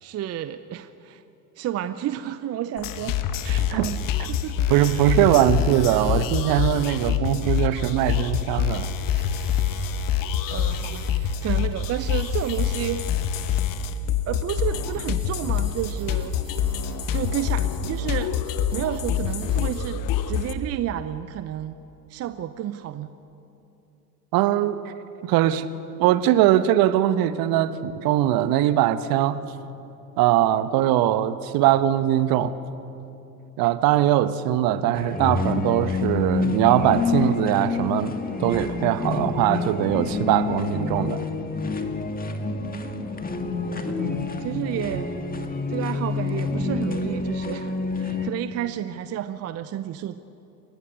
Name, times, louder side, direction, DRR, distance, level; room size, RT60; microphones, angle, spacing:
voice 1, 0.0-1.2 1.6-4.0 4.3-5.5 5.9-6.0 10.5-13.0 14.1-16.3 17.1-18.4 18.7-20.0 20.3-21.8 22.1-23.1 42.6-43.1 43.9-45.2 45.7-50.2, right 11 dB, 30° right, 12 dB, 0.7 m, -31 dB
sound 1, 2.8-20.5, left 8 dB, 45° left, 1.3 m, -26 dB
voice 2, 4.7-8.9 24.3-24.9 25.2-25.7 26.0-29.4 30.2-32.5 33.6-41.2, right 12 dB, 50° right, 13 dB, 1.1 m, -21 dB
sound 2, 9.0-21.0, right 2 dB, 10° right, 6.6 m, -49 dB
sound 3, 34.9-48.3, left 4 dB, 20° left, 1.8 m, -27 dB
29.0 x 15.5 x 6.5 m, 2.8 s
figure-of-eight pair, 75°, 47 cm